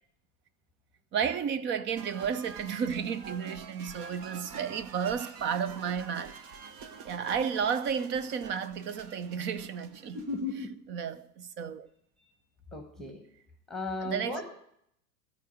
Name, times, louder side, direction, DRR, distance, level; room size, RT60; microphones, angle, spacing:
voice 1, 1.1-6.3 7.0-10.2 10.9-11.9 14.0-14.4, right 7 dB, 25° right, 0.5 m, -32 dB
sound 1, 1.9-10.5, right 6 dB, 40° right, 1.2 m, -47 dB
voice 2, 10.1-10.7 12.2-12.3 12.7-13.3 13.7-14.4, left 3 dB, ahead, 1.4 m, -36 dB
13.5 x 5.1 x 9.1 m
figure-of-eight pair, 85°, 49 cm